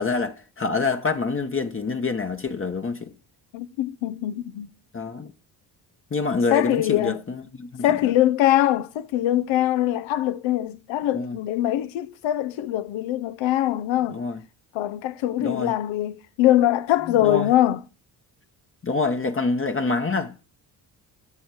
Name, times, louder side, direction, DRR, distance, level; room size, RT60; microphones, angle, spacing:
voice 1, 0.0-3.1 4.9-5.3 6.1-8.1 11.1-11.4 14.1-14.4 15.4-15.7 17.2-17.5 18.8-20.4, left 4 dB, 25° left, 1.0 m, -26 dB
voice 2, 3.5-4.7 6.5-7.2 7.8-14.2 14.7-17.8, left 13 dB, 75° left, 0.9 m, -23 dB
14.0 x 6.4 x 4.8 m
supercardioid pair, 60°, 46 cm